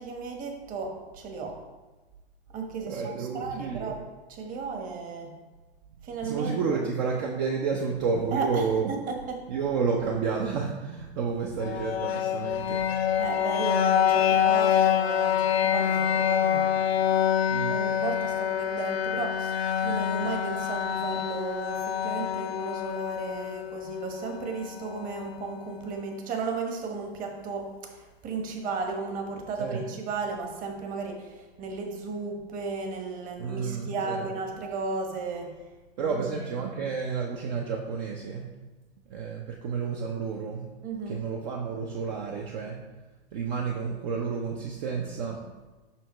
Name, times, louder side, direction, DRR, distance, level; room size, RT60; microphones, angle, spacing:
voice 1, 0.0-1.6 2.5-4.0 4.3-5.3 6.0-6.6 8.3-9.4 13.2-16.8 17.7-35.6 36.0-36.2 40.8-41.2, right 4 dB, 25° right, 3 dB, 1.2 m, -34 dB
voice 2, 2.9-4.0 6.2-8.9 9.5-12.8 17.5-17.8 29.6-29.9 33.4-34.3 36.0-38.4 39.1-40.6 41.1-42.8 43.3-45.4, right 5 dB, 45° right, 0 dB, 0.8 m, -30 dB
sound 1, 11.6-25.5, left 9 dB, 75° left, 0.6 m, -26 dB
7.0 x 5.7 x 3.1 m, 1.2 s
hypercardioid pair, 115°, 31 cm